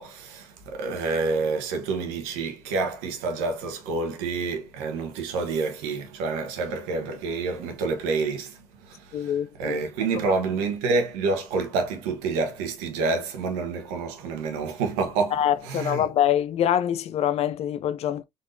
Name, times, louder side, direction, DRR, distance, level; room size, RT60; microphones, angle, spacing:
voice 1, 0.0-9.3 9.6-16.1, right 4 dB, 80° right, 1.3 m, -28 dB
voice 2, 9.1-9.8 10.3-10.4 15.3-18.2, left 10 dB, 60° left, 0.6 m, -25 dB
4.0 x 3.7 x 2.6 m
hypercardioid pair, 60°, 12 cm